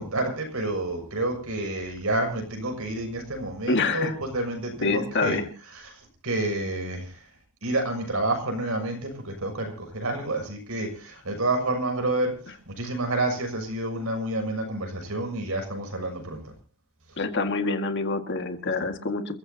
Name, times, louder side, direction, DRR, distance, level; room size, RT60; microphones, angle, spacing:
voice 1, 0.0-5.4 5.7-7.2 7.6-12.3 12.7-16.4, right 2 dB, 70° right, 3 dB, 6.6 m, -29 dB
voice 2, 3.7-4.1 4.8-5.5 17.2-19.4, left 3 dB, 55° left, 6 dB, 1.9 m, -26 dB
28.5 x 15.0 x 2.9 m, 0.38 s
head